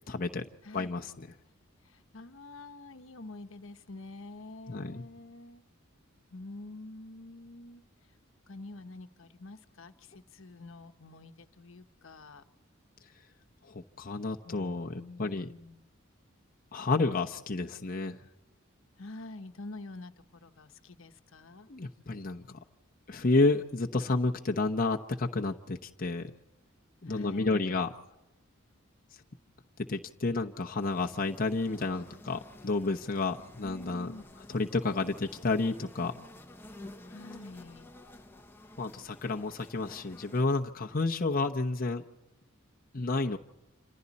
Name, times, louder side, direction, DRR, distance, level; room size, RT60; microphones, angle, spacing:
voice 1, 0.1-0.4 0.7-1.3 4.7-5.0 13.7-15.5 16.7-18.2 21.7-22.6 23.1-26.3 27.0-27.9 29.9-34.1 34.5-36.2 38.8-42.0 42.9-43.4, left 3 dB, 45° left, 1 dB, 0.9 m, -30 dB
voice 2, 0.6-1.0 1.8-5.6 6.3-7.8 8.5-12.4 14.4-15.8 19.0-21.7 27.0-27.8 33.6-34.3 37.1-37.9, left 2 dB, 70° left, 7 dB, 1.1 m, -47 dB
sound 1, 30.8-40.4, left 1 dB, 10° left, 1.1 m, -51 dB
28.0 x 26.5 x 4.2 m, 0.97 s
head